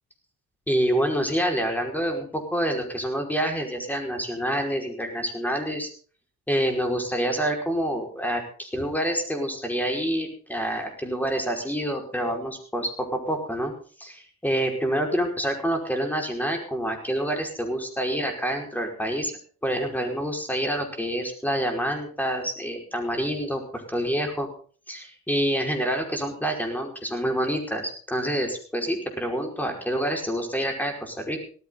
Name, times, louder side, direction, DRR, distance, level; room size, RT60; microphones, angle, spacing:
voice 1, 0.7-5.9 6.5-13.7 14.0-19.3 19.6-24.5 24.9-31.4, equal, 5° left, 2 dB, 5.1 m, -27 dB
18.0 x 14.5 x 3.9 m, 0.42 s
cardioid pair, 90°, 30 cm